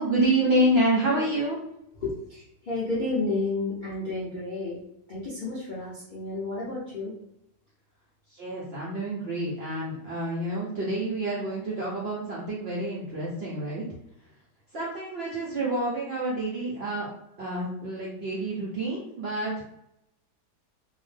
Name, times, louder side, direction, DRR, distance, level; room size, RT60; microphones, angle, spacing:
voice 1, 0.0-1.6 8.3-13.8 14.7-17.1 17.4-19.6, right 1 dB, 75° right, -5 dB, 0.6 m, -28 dB
voice 2, 2.0-4.8 5.1-7.1, left 3 dB, 70° left, -7 dB, 0.4 m, -31 dB
2.7 x 2.1 x 3.2 m, 0.79 s
omnidirectional pair, 1.8 m